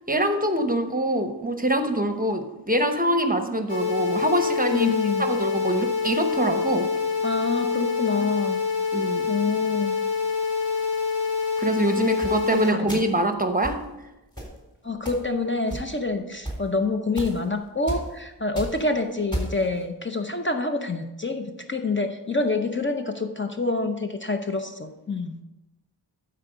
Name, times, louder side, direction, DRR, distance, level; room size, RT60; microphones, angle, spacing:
voice 1, 0.1-4.9 5.2-6.9 8.9-9.3 11.6-13.8, right 1 dB, 20° right, 7 dB, 0.9 m, -24 dB
sound 1, 3.7-12.7, left 5 dB, 55° left, 2.7 m, -26 dB
voice 2, 4.7-5.3 7.2-8.6 9.3-9.9 12.0-13.0 14.8-25.4, left 3 dB, 25° left, 5 dB, 0.7 m, -27 dB
sound 2, 12.2-12.4 12.9-13.2 13.6-13.8 14.4-14.6 15.1-15.3 15.7-16.1 16.4-16.6 17.2-17.4 17.9-18.1 18.4-18.8 19.3-19.6, right 1 dB, 10° left, 3.6 m, -32 dB
11.5 x 4.6 x 5.0 m, 1.0 s
wide cardioid pair, 65°, 42 cm